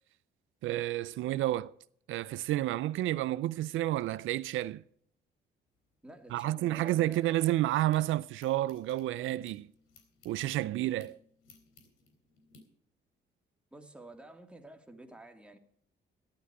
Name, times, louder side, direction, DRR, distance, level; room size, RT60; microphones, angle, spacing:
voice 1, 0.6-1.7 2.1-4.8 6.3-9.7 10.2-11.2, right 14 dB, 80° right, 0.5 m, -30 dB
sound 1, 5.7-8.0 8.4-12.6, left 3 dB, 85° left, 3.6 m, -62 dB
voice 2, 6.0-7.2 13.7-15.6, right 2 dB, 5° right, 2.3 m, -50 dB
14.0 x 12.0 x 4.9 m
cardioid pair, 90°, 20 cm